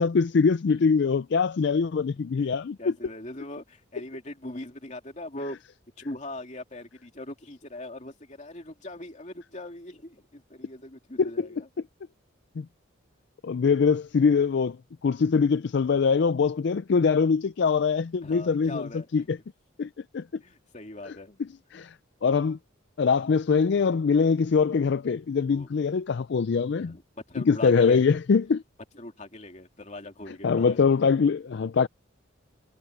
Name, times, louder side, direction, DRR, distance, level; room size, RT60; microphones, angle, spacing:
voice 1, 0.0-2.9 11.2-11.5 12.6-12.7 13.4-14.8 15.0-19.4 19.8-20.2 21.1-21.2 21.7-21.9 22.2-22.6 23.0-27.0 27.4-28.6 30.3-31.9, left 5 dB, 60° left, 0.4 m, -23 dB
voice 2, 2.8-5.6 6.0-11.7 18.2-19.3 20.4-21.4 25.5-25.7 26.8-28.1 28.9-30.8, left 1 dB, 35° left, 2.8 m, -41 dB
head